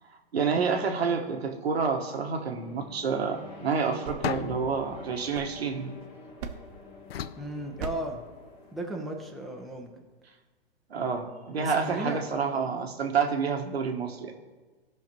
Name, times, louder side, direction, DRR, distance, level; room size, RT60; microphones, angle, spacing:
voice 1, 0.3-5.9 10.9-14.3, right 5 dB, 85° right, 4 dB, 1.4 m, -28 dB
sound 1, 2.5-9.7, left 4 dB, 20° left, 1.6 m, -50 dB
sound 2, 3.8-6.0 6.4-6.9 7.8-8.2, right 6 dB, 40° right, 0.8 m, -41 dB
sound 3, 4.2-6.4 7.1-8.5, left 9 dB, 75° left, 0.5 m, -38 dB
voice 2, 7.4-8.2 8.7-10.1 11.6-12.2, right 1 dB, ahead, 0 dB, 0.6 m, -35 dB
15.5 x 5.8 x 3.0 m, 1.3 s
hypercardioid pair, 140°, 31 cm